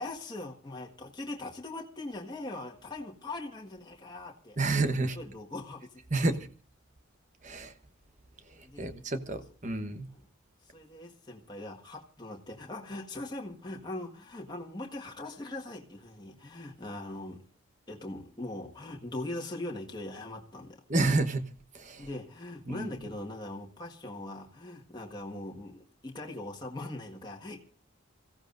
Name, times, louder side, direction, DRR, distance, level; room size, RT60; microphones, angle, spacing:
voice 1, 0.0-4.8 5.1-6.0 8.6-8.9 10.1-10.3 10.6-17.4 17.9-20.8 22.0-27.6, left 2 dB, 20° left, 1.6 m, -41 dB
voice 2, 4.6-5.2 6.1-6.5 7.4-7.7 8.6-10.1 20.9-21.4 21.7-22.1 22.7-22.9, right 2 dB, 35° right, 1.1 m, -29 dB
28.0 x 16.0 x 2.6 m
head